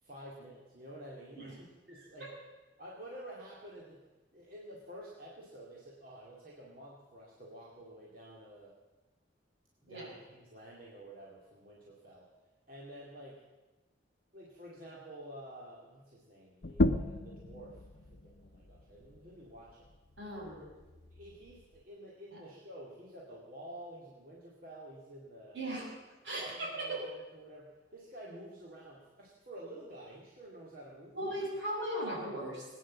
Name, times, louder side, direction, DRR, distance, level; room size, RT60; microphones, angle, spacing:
voice 1, 0.0-2.3 2.8-4.0 4.3-8.7 9.8-12.3 12.7-13.4 14.3-19.9 21.1-25.7 26.4-31.4, right 1 dB, 50° right, -4 dB, 2.4 m, -50 dB
voice 2, 1.9-2.3 9.9-10.1 20.2-20.7 22.3-22.4 25.5-25.9 26.2-27.0 31.1-32.7, right 1 dB, 75° right, -3 dB, 6.4 m, -38 dB
sound 1, 16.6-21.8, left 1 dB, 55° left, 0.7 m, -36 dB
20.5 x 9.5 x 7.4 m, 1.2 s
head